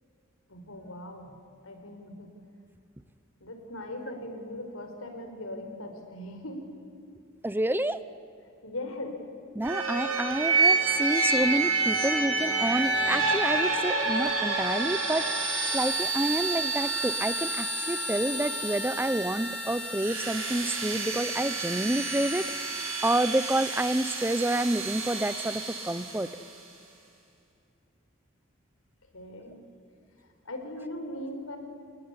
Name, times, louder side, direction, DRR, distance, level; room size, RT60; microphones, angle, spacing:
voice 1, 0.5-1.3 1.6-2.3 3.4-6.6 8.6-9.2 29.1-29.6 30.2-31.6, left 1 dB, 90° left, 4 dB, 4.9 m, -39 dB
voice 2, 7.4-8.0 9.5-15.3 15.7-26.3, right 1 dB, 10° right, 14 dB, 0.7 m, -29 dB
sound 1, 9.6-26.4, right 3 dB, 80° right, 6.6 m, -29 dB
29.5 x 18.5 x 9.8 m, 2.5 s
head